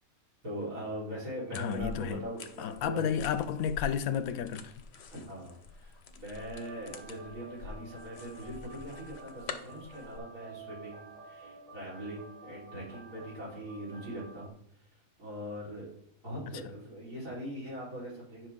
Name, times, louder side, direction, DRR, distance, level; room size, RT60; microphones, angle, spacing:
voice 1, 0.4-3.0 5.1-14.5 14.8-15.9 16.2-18.5, right 1 dB, 70° right, 4.3 m, -41 dB
voice 2, 1.5-2.2 2.6-4.7, left 8 dB, 80° left, 1.0 m, -32 dB
sound 1, 1.5-10.2, left 5 dB, 55° left, 0.9 m, -46 dB
sound 2, 6.3-14.5, right 2 dB, 25° right, 1.2 m, -50 dB
10.0 x 5.7 x 3.6 m
omnidirectional pair, 1.5 m